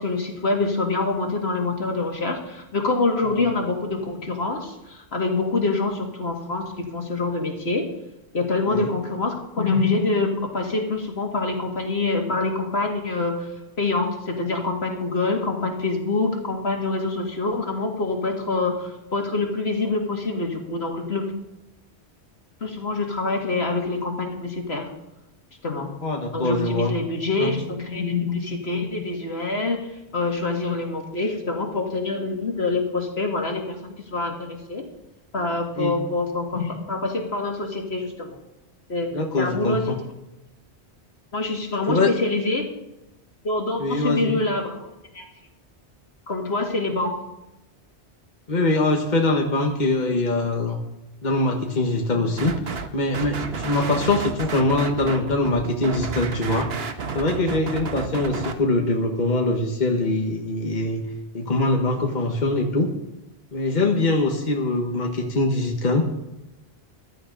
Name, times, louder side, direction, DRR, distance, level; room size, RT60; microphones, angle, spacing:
voice 1, 0.0-7.9 8.3-13.5 13.8-21.3 22.6-24.9 25.6-25.9 26.3-34.8 35.3-38.4 38.9-39.1 39.4-40.0 41.3-42.7 43.4-44.9 45.1-45.3 46.3-47.1, left 3 dB, 70° left, 1 dB, 2.6 m, -25 dB
voice 2, 26.0-26.9 27.4-27.5 35.8-35.9 39.1-40.0 41.9-42.1 43.8-44.4 48.5-50.8 51.2-52.5 52.9-56.7 57.1-61.0 61.3-62.9 63.5-66.0, left 2 dB, 45° left, 2 dB, 1.5 m, -23 dB
sound 1, 52.4-52.9 53.1-58.5, right 5 dB, 65° right, 1.3 m, -31 dB
15.0 x 13.0 x 4.0 m, 0.93 s
omnidirectional pair, 1.1 m